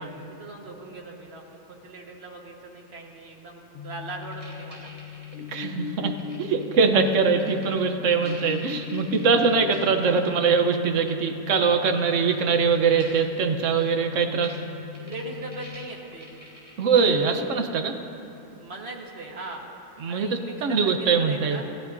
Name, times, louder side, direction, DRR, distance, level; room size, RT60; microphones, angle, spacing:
voice 1, 0.0-4.9 14.9-16.3 18.6-19.7 20.1-21.6, right 2 dB, 35° right, 0 dB, 1.5 m, -40 dB
sound 1, 3.7-15.9, left 9 dB, 80° left, 1.6 m, -39 dB
sound 2, 4.2-5.7 6.2-6.8 7.1-7.8 8.2-9.8 10.1-10.3 11.5-11.6 11.8-12.5 12.7-13.2 13.6-13.8 14.4-14.6 14.9-17.4, equal, 5° right, 3.6 m, -46 dB
voice 2, 5.5-6.1 6.4-14.6 16.8-18.0 20.0-20.3 20.6-21.6, right 5 dB, 50° right, 5 dB, 0.9 m, -22 dB
27.5 x 14.5 x 2.7 m, 2.9 s
omnidirectional pair, 2.2 m